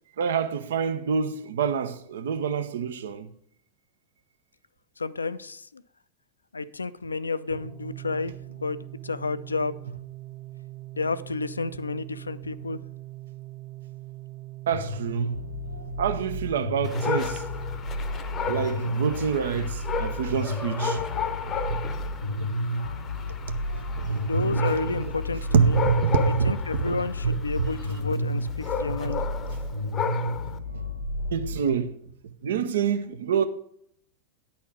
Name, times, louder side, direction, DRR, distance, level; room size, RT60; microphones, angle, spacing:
voice 1, 0.2-3.3 14.7-15.3 16.0-17.5 18.4-21.0 21.5-21.8 22.3-22.5 23.3-23.6 23.9-25.1 25.5-27.0 27.2-27.7 28.2-28.3 29.0-29.2 31.3-31.9 32.4-33.4, right 6 dB, 60° right, 0.7 m, -27 dB
voice 2, 5.0-5.8 6.5-8.8 9.0-9.8 10.9-12.8 24.3-25.8 26.4-29.2, left 4 dB, 75° left, 0.4 m, -31 dB
Organ, 7.6-18.4, right 17 dB, 25° right, 0.5 m, -42 dB
sound 1, 14.7-31.6, left 1 dB, 85° right, 0.9 m, -32 dB
Dog, 16.8-30.6, left 6 dB, 25° left, 0.7 m, -34 dB
10.0 x 4.3 x 7.4 m
figure-of-eight pair, 90°, 0 cm